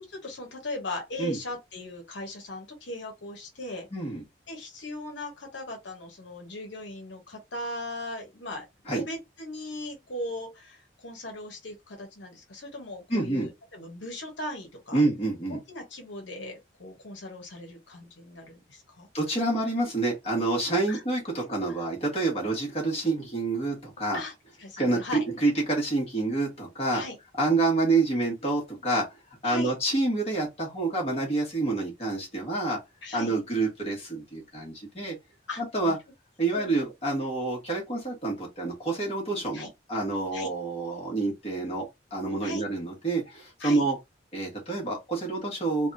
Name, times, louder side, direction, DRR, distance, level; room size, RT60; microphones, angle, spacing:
voice 1, 0.1-3.9 4.5-8.6 8.9-15.0 15.5-19.1 20.9-21.0 24.1-24.3 24.6-25.2 26.9-27.2 29.4-29.7 33.0-33.3 35.5-36.0 36.5-36.8 39.5-39.7 40.3-40.5 42.4-42.6 43.6-43.9, left 1 dB, 75° left, 1.0 m, -38 dB
voice 2, 3.9-4.2 8.9-9.0 13.1-13.5 14.9-15.6 19.1-24.2 24.8-27.0 27.4-29.0 29.4-32.8 33.1-35.2 35.6-36.0 36.4-41.8 42.1-44.0 44.3-45.9, right 2 dB, 30° left, 1.3 m, -28 dB
3.4 x 2.3 x 2.6 m
head